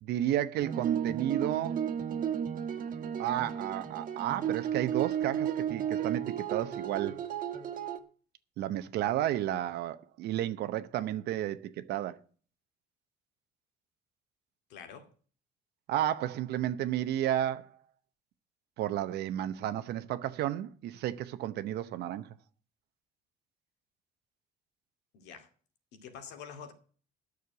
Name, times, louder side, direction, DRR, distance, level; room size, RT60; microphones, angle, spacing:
voice 1, 0.0-1.8 3.2-7.2 8.6-12.2 15.9-17.7 18.8-22.3, right 12 dB, 75° right, 0.9 m, -32 dB
sound 1, 0.6-8.0, right 9 dB, 55° right, 1.5 m, -34 dB
voice 2, 14.7-15.1 25.1-25.5 25.9-26.7, left 7 dB, 85° left, 2.3 m, -46 dB
9.7 x 6.6 x 8.9 m
cardioid pair, 110°, 17 cm